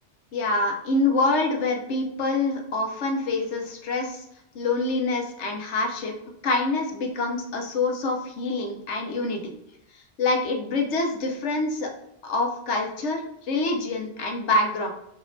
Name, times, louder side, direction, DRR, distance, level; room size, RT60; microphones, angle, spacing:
voice 1, 0.3-4.2 4.5-6.1 6.4-9.6 9.9-11.9 12.2-14.9, left 2 dB, 85° left, 3 dB, 1.1 m, -26 dB
5.0 x 2.9 x 2.6 m, 0.79 s
omnidirectional pair, 1.1 m